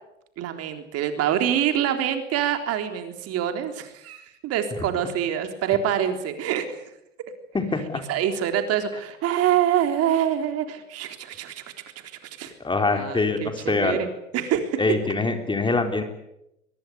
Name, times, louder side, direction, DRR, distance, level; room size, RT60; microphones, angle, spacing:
voice 1, 0.4-6.8 8.1-11.6 12.2-12.5 13.0-14.1 14.3-14.8, right 10 dB, 40° right, 7 dB, 3.7 m, -25 dB
voice 2, 7.5-8.0 12.6-14.0 14.8-16.0, left 3 dB, 15° left, 6 dB, 3.9 m, -24 dB
23.0 x 22.0 x 9.6 m, 0.84 s
figure-of-eight pair, 90°, 37 cm